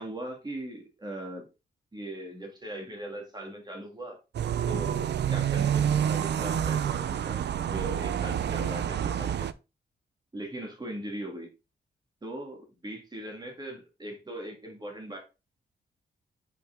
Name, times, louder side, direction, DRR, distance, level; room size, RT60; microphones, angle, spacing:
voice 1, 0.0-1.5 1.9-4.2 4.7-7.4 7.7-9.5 10.3-11.5 12.2-15.2, right 1 dB, 20° right, 1 dB, 2.1 m, -39 dB
sound 1, 4.3-9.5, right 9 dB, 65° right, 0.4 m, -28 dB
5.9 x 4.8 x 3.6 m, 0.28 s
wide cardioid pair, 110°, 19 cm